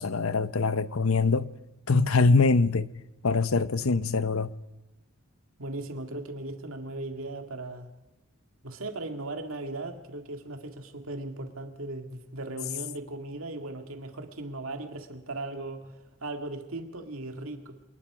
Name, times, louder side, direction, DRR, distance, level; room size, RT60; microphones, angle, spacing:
voice 1, 0.0-1.5 1.9-2.9 3.2-4.5, left 3 dB, 75° left, 0.8 m, -23 dB
voice 2, 5.6-7.9 8.6-17.8, right 2 dB, 75° right, 2.1 m, -37 dB
27.0 x 20.0 x 4.9 m
head